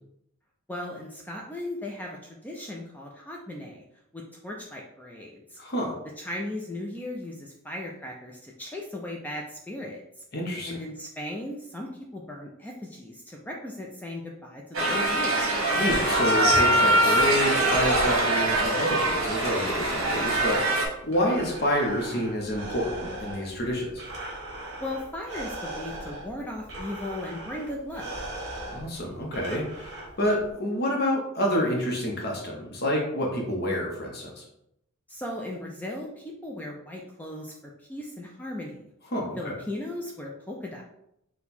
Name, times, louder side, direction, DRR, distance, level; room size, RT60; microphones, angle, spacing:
voice 1, 0.7-2.2 2.4-3.8 4.1-5.6 6.2-10.0 10.7-11.9 12.1-15.4 24.8-28.1 35.1-37.5 37.9-38.8 39.4-40.8, left 1 dB, 10° left, -1 dB, 0.3 m, -37 dB
voice 2, 5.6-5.9 10.3-10.8 15.7-24.0 28.7-34.4 39.1-39.6, equal, 45° left, -1 dB, 0.7 m, -28 dB
sound 1, 14.7-20.9, right 1 dB, 65° right, 1.1 m, -23 dB
Breathing, 20.9-30.5, right 1 dB, 50° right, 1.3 m, -39 dB
4.4 x 2.2 x 4.1 m, 0.79 s
head